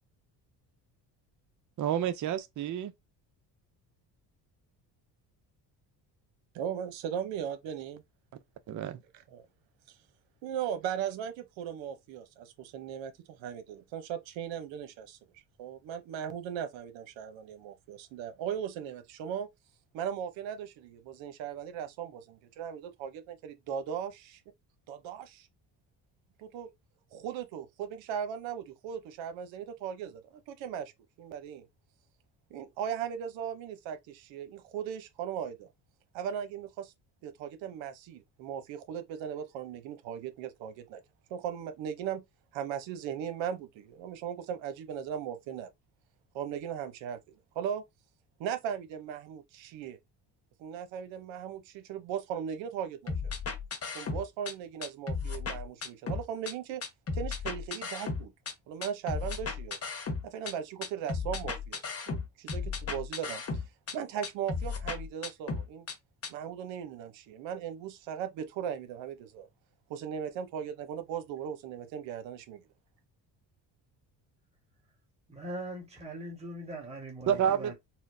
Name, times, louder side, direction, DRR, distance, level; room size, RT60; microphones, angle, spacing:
voice 1, 1.8-2.9 8.7-9.0 77.3-77.7, right 9 dB, 45° right, 0.6 m, -29 dB
voice 2, 6.5-8.0 9.3-9.5 10.4-15.2 15.6-19.5 19.9-24.4 24.9-25.5 26.4-26.7 27.1-30.9 31.2-31.7 32.5-35.7 36.1-36.9 37.2-41.0 41.3-42.2 42.5-45.7 46.3-47.2 47.5-47.8 48.4-50.0 50.6-53.1 53.9-56.8 57.1-58.3 58.7-59.8 60.2-61.8 62.1-63.6 63.9-65.9 66.3-69.5 69.9-72.7, right 8 dB, 85° right, 0.9 m, -38 dB
sound 1, 53.1-54.5 54.8-56.5 56.8-58.5 58.8-60.5 60.8-63.9 64.2-65.9 66.2-66.3, left 4 dB, 30° left, 1.0 m, -35 dB
voice 3, 75.3-77.7, right 1 dB, 15° right, 1.5 m, -41 dB
4.3 x 2.1 x 2.6 m
cardioid pair, 85°, 44 cm